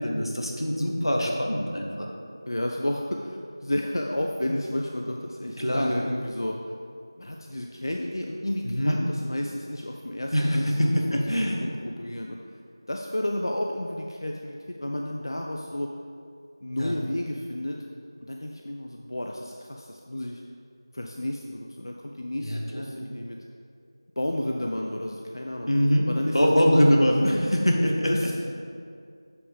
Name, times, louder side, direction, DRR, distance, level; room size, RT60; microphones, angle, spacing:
voice 1, 0.0-2.1 5.6-5.9 8.6-9.0 10.3-11.6 16.8-16.9 22.4-22.9 25.7-26.1 26.3-28.1, equal, 90° left, 0 dB, 1.4 m, -23 dB
voice 2, 2.5-6.6 7.2-12.4 12.9-15.9 16.6-17.8 18.2-20.4 20.9-23.4 24.2-26.9 28.0-28.3, left 1 dB, 60° left, 1 dB, 0.5 m, -32 dB
7.8 x 5.9 x 3.6 m, 2.3 s
figure-of-eight pair, 175°, 2 cm